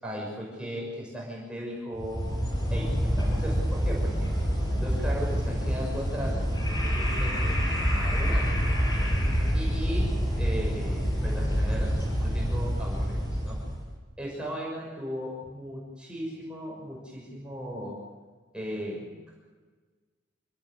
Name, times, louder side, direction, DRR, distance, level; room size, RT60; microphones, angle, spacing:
voice 1, 0.0-2.3 2.7-4.3 4.8-8.6 9.5-13.6 14.2-18.0 18.5-19.4, equal, 5° right, -3 dB, 6.5 m, -37 dB
sound 1, 2.0-13.9, equal, 20° left, 7.5 m, -27 dB
27.0 x 18.0 x 8.2 m, 1.4 s
head